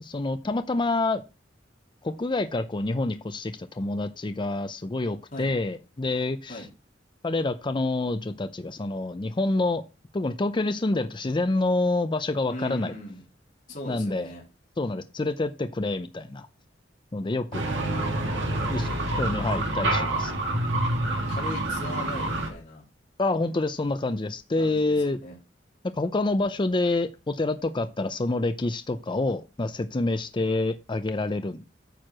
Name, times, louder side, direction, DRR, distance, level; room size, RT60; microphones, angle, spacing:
voice 1, 0.0-1.2 2.0-6.7 7.2-9.8 10.1-12.9 13.9-14.3 14.8-16.5 17.1-17.7 18.7-18.9 19.2-20.4 23.2-25.2 25.9-31.6, left 2 dB, 25° left, 10 dB, 0.5 m, -27 dB
voice 2, 12.5-13.2 13.7-14.4 17.7-19.0 21.1-22.8 24.6-25.3, left 1 dB, 45° left, -3 dB, 3.3 m, -39 dB
sound 1, 17.5-22.5, right 1 dB, 70° right, 2.1 m, -27 dB
9.1 x 4.6 x 6.1 m, 0.30 s
head